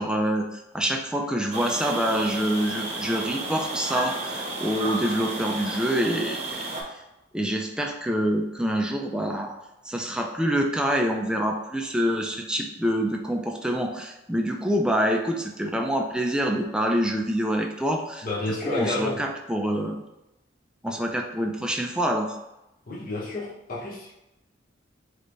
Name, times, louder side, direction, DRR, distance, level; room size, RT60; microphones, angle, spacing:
voice 1, 0.0-6.7 7.3-9.5 9.9-18.3 18.6-20.0 20.8-22.3, equal, 5° right, 2 dB, 0.4 m, -26 dB
sound 1, 1.5-6.8, right 2 dB, 35° right, 0.8 m, -32 dB
voice 2, 18.2-19.2 22.9-24.1, left 2 dB, 50° left, -7 dB, 0.9 m, -30 dB
3.4 x 3.2 x 3.9 m, 0.92 s
head